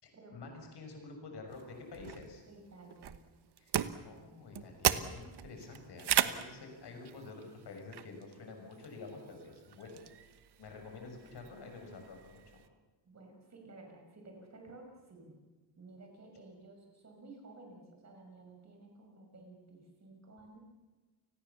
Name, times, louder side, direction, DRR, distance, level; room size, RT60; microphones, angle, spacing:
voice 1, 0.0-2.4 3.6-3.7 4.0-10.3 10.6-12.6, left 3 dB, 60° left, 3 dB, 6.7 m, -49 dB
sound 1, 1.5-12.7, right 10 dB, 60° right, 1.2 m, -38 dB
voice 2, 2.5-3.1 4.9-5.0 6.7-6.9 13.1-15.4 15.8-20.6, right 2 dB, 35° right, 2 dB, 5.9 m, -54 dB
29.5 x 20.5 x 7.1 m, 1.3 s
wide cardioid pair, 165°, 45 cm